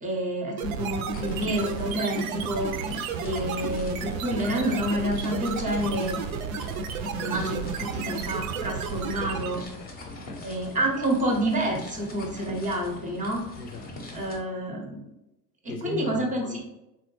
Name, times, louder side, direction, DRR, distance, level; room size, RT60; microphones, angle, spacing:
voice 1, 0.0-2.7 3.2-6.2 7.2-9.6 10.4-13.5 14.1-15.0 15.6-16.6, right 1 dB, 15° right, 1 dB, 0.6 m, -28 dB
sound 1, 0.6-9.7, right 6 dB, 60° right, 0.5 m, -32 dB
sound 2, 1.1-14.4, left 2 dB, 20° left, 0.7 m, -42 dB
voice 2, 9.7-10.5 13.6-14.3 15.7-16.6, left 3 dB, 75° left, 5 dB, 0.7 m, -39 dB
3.6 x 2.1 x 3.0 m, 0.93 s
figure-of-eight pair, 75°, 48 cm